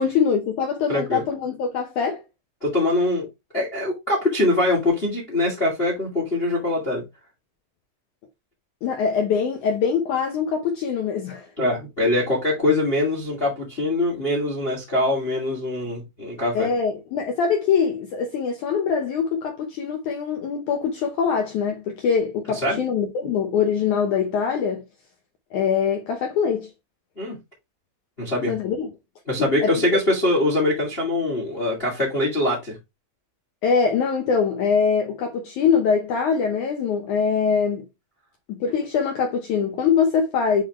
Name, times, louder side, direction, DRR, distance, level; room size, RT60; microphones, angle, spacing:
voice 1, 0.0-2.2 8.8-11.5 16.5-24.8 25.5-26.7 28.5-28.9 29.6-29.7 33.6-37.8 38.5-40.6, left 6 dB, 90° left, 1.7 m, -23 dB
voice 2, 0.9-1.2 2.6-3.3 3.5-7.0 11.6-16.7 22.6-22.8 27.1-27.4 28.2-28.5 29.3-32.8, left 2 dB, 25° left, 1.4 m, -23 dB
8.2 x 3.8 x 3.1 m
omnidirectional pair, 5.0 m